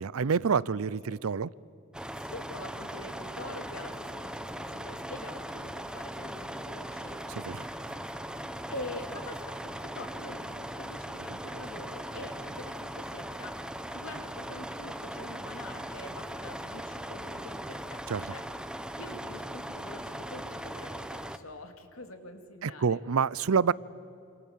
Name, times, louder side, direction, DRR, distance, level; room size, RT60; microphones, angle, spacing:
voice 1, 0.0-1.5 7.3-7.7 18.1-18.3 22.6-23.7, right 6 dB, 90° right, 0.5 m, -27 dB
sound 1, 1.9-21.4, right 1 dB, 5° right, 0.9 m, -39 dB
voice 2, 2.1-7.2 8.7-13.6 13.9-18.4 19.0-23.0, left 2 dB, 80° left, 2.8 m, -45 dB
28.0 x 27.0 x 7.4 m
head